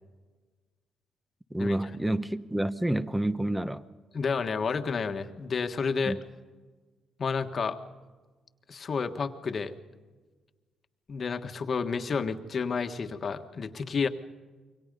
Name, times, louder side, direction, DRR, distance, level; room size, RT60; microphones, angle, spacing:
voice 1, 1.5-3.8 6.0-6.2, right 1 dB, 5° right, 13 dB, 1.1 m, -29 dB
voice 2, 4.1-6.2 7.2-7.8 8.7-9.7 11.1-14.1, left 5 dB, 45° left, 7 dB, 1.5 m, -30 dB
27.5 x 24.0 x 5.4 m, 1.4 s
cardioid pair, 90°, 0 cm